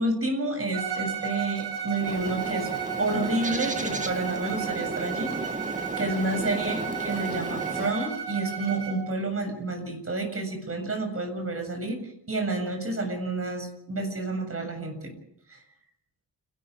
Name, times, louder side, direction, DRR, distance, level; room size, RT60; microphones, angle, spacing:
voice 1, 0.0-2.7 3.0-5.3 6.0-12.0 12.3-15.1, right 2 dB, 35° right, 5 dB, 7.6 m, -29 dB
Bowed string instrument, 0.7-9.1, right 8 dB, 75° right, 6.1 m, -34 dB
Bird, 2.0-7.9, right 2 dB, 20° right, 1.8 m, -34 dB
29.0 x 12.5 x 8.5 m, 0.71 s
cardioid pair, 95°, 40 cm